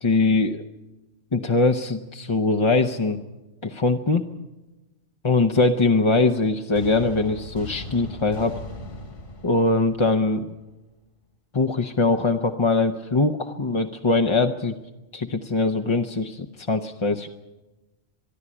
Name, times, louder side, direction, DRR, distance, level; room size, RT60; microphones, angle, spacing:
voice 1, 0.0-0.6 1.3-3.2 3.6-4.3 5.2-8.6 9.4-10.5 11.5-14.8 15.1-17.3, left 3 dB, 30° left, 4 dB, 0.7 m, -22 dB
sound 1, 6.7-10.7, left 1 dB, 50° left, 1.9 m, -39 dB
24.5 x 11.0 x 10.0 m, 1.1 s
omnidirectional pair, 1.2 m